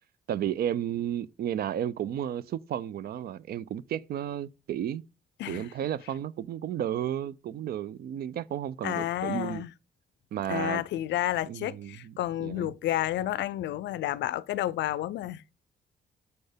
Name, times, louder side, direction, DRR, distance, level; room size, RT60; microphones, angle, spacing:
voice 1, 0.3-5.0 5.5-9.6 10.3-10.8 11.5-12.7, right 10 dB, 60° right, 0.4 m, -33 dB
voice 2, 5.4-5.7 8.8-9.7 10.5-15.4, left 13 dB, 85° left, 0.4 m, -31 dB
6.8 x 4.3 x 5.0 m
cardioid pair, 140°, 18 cm